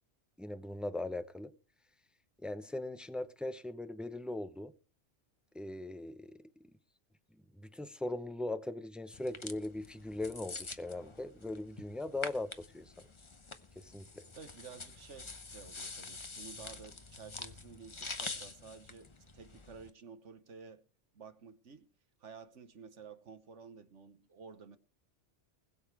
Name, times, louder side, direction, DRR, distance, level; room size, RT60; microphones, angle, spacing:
voice 1, 0.4-1.5 2.4-4.7 5.5-6.4 7.5-12.9 13.8-14.2, left 2 dB, ahead, 0.6 m, -40 dB
sound 1, 9.1-19.9, left 3 dB, 25° left, 0.9 m, -46 dB
voice 2, 14.3-20.8 21.1-21.9 22.2-24.8, right 5 dB, 75° right, 1.6 m, -52 dB
20.5 x 7.1 x 4.8 m
omnidirectional pair, 1.2 m